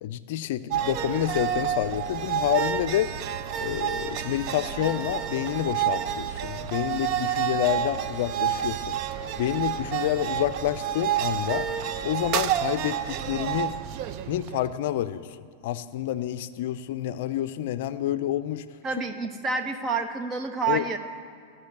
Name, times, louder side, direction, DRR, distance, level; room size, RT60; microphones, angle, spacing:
voice 1, 0.0-3.1 3.6-9.0 9.4-11.7 12.0-13.8 14.3-15.3 15.6-18.6 20.7-20.8, left 12 dB, 60° left, 14 dB, 0.4 m, -28 dB
sound 1, 0.7-14.7, right 9 dB, 50° right, 0.6 m, -29 dB
voice 2, 18.8-21.0, right 4 dB, 30° right, 7 dB, 1.1 m, -28 dB
14.5 x 6.0 x 8.1 m, 2.3 s
hypercardioid pair, 105°, 0 cm